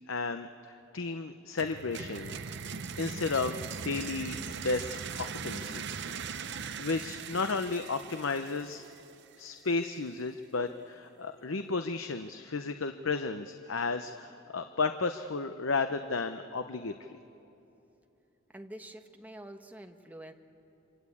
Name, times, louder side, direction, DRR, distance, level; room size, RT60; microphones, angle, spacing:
voice 1, 0.1-2.4 3.0-3.6 3.8-5.8 6.4-8.8 9.4-17.2, left 4 dB, 75° left, 8 dB, 0.8 m, -33 dB
sound 1, 1.6-9.3, right 6 dB, 60° right, 0.8 m, -40 dB
voice 2, 18.5-20.3, right 1 dB, 10° right, 4 dB, 1.2 m, -47 dB
27.5 x 25.0 x 8.5 m, 2.9 s
head